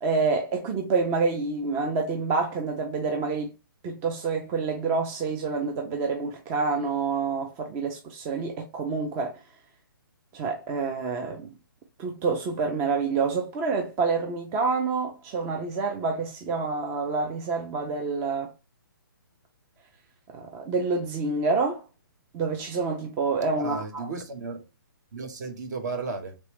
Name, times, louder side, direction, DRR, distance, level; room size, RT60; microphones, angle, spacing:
voice 1, 0.0-3.5 3.8-9.4 10.3-11.5 12.0-18.5 20.3-21.8 22.3-24.1, right 4 dB, 15° right, 0.4 m, -27 dB
voice 2, 23.6-24.6 25.1-26.4, right 4 dB, 50° right, 1.0 m, -34 dB
3.5 x 3.0 x 3.0 m
hypercardioid pair, 150°, 12 cm